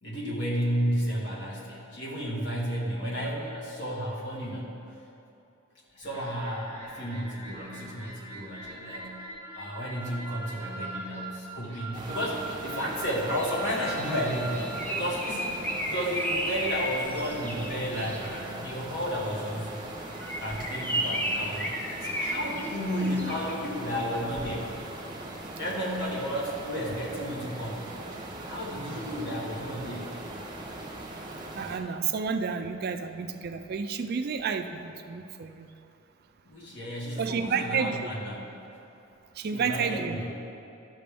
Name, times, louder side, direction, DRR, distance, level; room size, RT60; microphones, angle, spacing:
voice 1, 0.0-4.8 5.9-9.2 9.6-15.6 15.8-20.0 20.4-24.7 25.6-27.9 28.5-30.2 36.4-38.4 39.5-40.3, equal, 55° left, -3 dB, 1.6 m, -32 dB
sound 1, 6.0-18.3, right 2 dB, 30° left, 1.6 m, -42 dB
sound 2, 11.9-31.8, right 1 dB, 20° right, 0.9 m, -40 dB
Bird, 14.4-18.5 20.1-23.6, equal, 10° left, 0.5 m, -33 dB
voice 2, 31.6-35.7 37.2-38.1 39.3-40.2, right 6 dB, 45° right, 7 dB, 0.3 m, -30 dB
12.0 x 6.0 x 3.4 m, 2.8 s
head